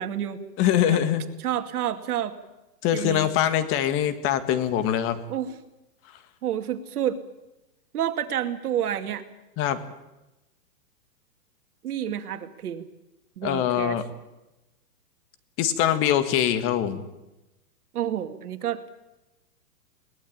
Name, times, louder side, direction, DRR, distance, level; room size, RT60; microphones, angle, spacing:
voice 1, 0.0-0.4 0.9-1.0 1.4-2.3 2.9-3.3 5.3-5.6 6.4-7.2 7.9-9.2 11.8-12.9 13.4-14.0 17.9-18.8, right 10 dB, 70° right, 8 dB, 2.4 m, -29 dB
voice 2, 0.6-1.2 2.8-5.2 9.6-9.8 13.4-14.0 15.6-17.0, left 10 dB, 30° left, 10 dB, 1.7 m, -23 dB
22.0 x 18.5 x 8.8 m, 0.98 s
hypercardioid pair, 145°, 47 cm